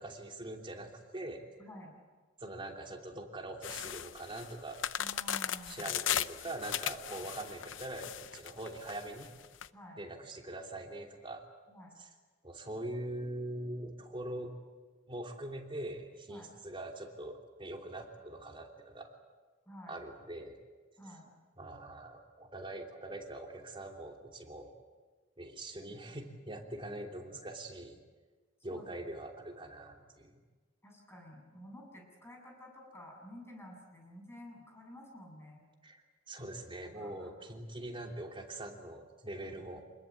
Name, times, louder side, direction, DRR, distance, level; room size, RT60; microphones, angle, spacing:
voice 1, 0.0-1.4 2.4-4.8 5.7-9.3 10.0-11.4 12.4-14.5 15.1-19.1 19.9-20.6 21.6-24.7 25.4-28.0 28.6-30.4 35.8-36.0 36.3-39.8, right 1 dB, 25° right, 2 dB, 3.0 m, -43 dB
voice 2, 1.6-1.9 5.0-6.0 7.1-7.3 9.7-10.0 11.7-12.0 16.3-16.5 19.7-20.0 21.0-21.3 25.9-26.2 28.7-29.2 30.8-35.6 36.9-37.3, left 1 dB, 15° left, 1 dB, 7.6 m, -51 dB
sound 1, 3.6-9.7, left 10 dB, 75° left, 0.7 m, -37 dB
27.5 x 21.0 x 8.5 m, 1.4 s
head